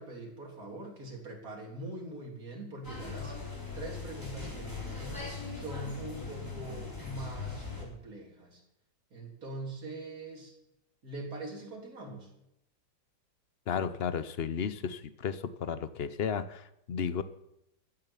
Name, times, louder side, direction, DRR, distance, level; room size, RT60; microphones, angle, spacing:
voice 1, 0.0-3.5 3.7-8.6 9.1-10.5 11.0-12.3, right 2 dB, 50° right, -1 dB, 3.9 m, -43 dB
sound 1, 2.8-7.8, left 4 dB, 10° left, 3.9 m, -40 dB
voice 2, 13.7-17.2, left 7 dB, 55° left, 13 dB, 0.6 m, -33 dB
15.0 x 10.0 x 7.2 m, 0.83 s
omnidirectional pair, 2.0 m